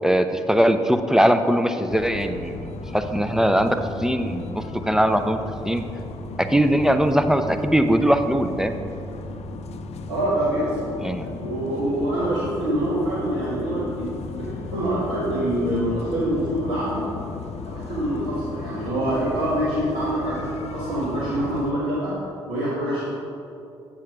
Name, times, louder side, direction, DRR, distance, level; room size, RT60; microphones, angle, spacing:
voice 1, 0.0-5.4 5.6-5.8 6.4-8.8 11.0-11.3, equal, 5° right, 7 dB, 0.5 m, -21 dB
sound 1, 1.9-21.7, left 3 dB, 50° left, 0.5 m, -35 dB
voice 2, 10.1-10.9 11.4-17.0 17.7-22.1 22.5-23.1, right 1 dB, 80° right, -9 dB, 1.6 m, -25 dB
7.5 x 4.3 x 6.1 m, 2.6 s
hypercardioid pair, 45°, 14 cm